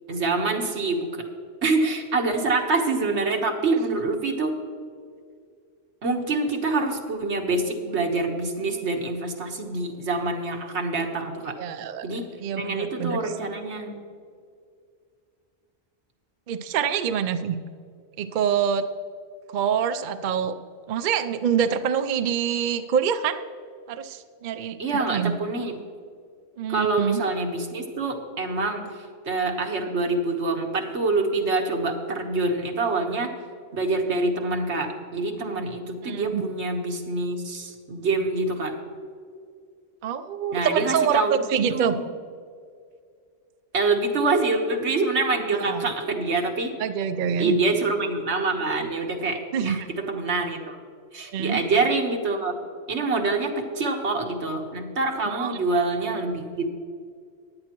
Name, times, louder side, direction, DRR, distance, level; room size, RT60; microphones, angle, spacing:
voice 1, 0.1-1.3 1.6-4.6 6.0-11.6 12.0-12.3 12.6-14.0 24.8-25.7 26.7-33.3 33.7-38.8 40.5-42.1 43.7-46.7 47.4-50.8 51.1-52.5 52.9-56.7, right 3 dB, 90° right, 2 dB, 1.6 m, -26 dB
voice 2, 11.6-12.1 12.4-13.2 16.5-17.6 18.2-18.9 19.5-20.5 20.9-23.4 23.9-25.3 26.6-27.2 36.0-36.4 40.0-42.0 45.5-45.8 46.8-47.6 49.5-49.8 51.2-51.6 55.3-55.5, right 7 dB, 55° right, 9 dB, 0.6 m, -25 dB
16.5 x 10.5 x 3.0 m, 2.2 s
omnidirectional pair, 1.1 m